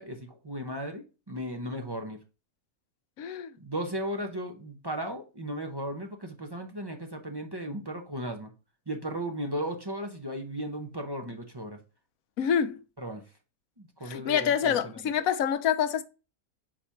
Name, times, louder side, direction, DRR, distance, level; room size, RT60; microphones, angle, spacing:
voice 1, 0.0-2.2 3.6-8.5 8.9-11.8 13.0-13.2 13.8-15.0, equal, 25° right, 0.6 m, -36 dB
voice 2, 3.2-3.5 12.4-12.8 14.0-16.0, left 8 dB, 70° left, 1.1 m, -26 dB
4.9 x 4.3 x 5.6 m
omnidirectional pair, 1.6 m